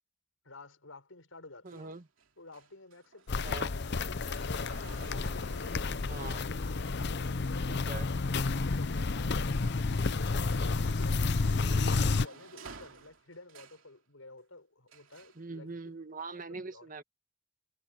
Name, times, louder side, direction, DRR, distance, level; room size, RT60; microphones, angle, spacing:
voice 1, 0.4-1.9 2.4-6.2 6.9-10.2 10.7-15.9 16.5-16.9, left 2 dB, 85° left, 5.7 m, -52 dB
voice 2, 1.6-2.0 3.4-3.7 6.1-6.4 7.7-8.1 11.6-12.0 15.4-17.0, right 3 dB, 40° right, 1.6 m, -43 dB
sound 1, 1.7-8.9 9.3-13.9 14.9-15.4 16.3-16.4, right 4 dB, 80° right, 2.8 m, -54 dB
Walk footsteps, 3.3-12.3, left 3 dB, 55° left, 0.7 m, -31 dB
head